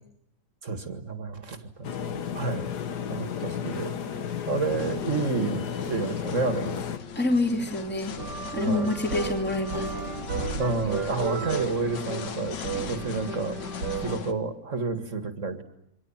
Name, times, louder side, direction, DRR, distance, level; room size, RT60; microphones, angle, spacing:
voice 1, 0.6-2.7 3.1-4.0 4.5-6.8 8.6-8.9 10.6-13.6 14.0-15.6, right 3 dB, 45° right, 9 dB, 2.3 m, -30 dB
sound 1, 1.8-7.0, left 8 dB, 70° left, 1.8 m, -33 dB
sound 2, 4.7-14.3, left 7 dB, 85° left, 2.0 m, -39 dB
voice 2, 7.1-8.1 8.5-9.9, left 2 dB, 5° left, 3 dB, 2.7 m, -26 dB
sound 3, 8.2-14.2, right 5 dB, 75° right, 2.3 m, -34 dB
28.5 x 24.5 x 7.4 m, 0.77 s
omnidirectional pair, 1.9 m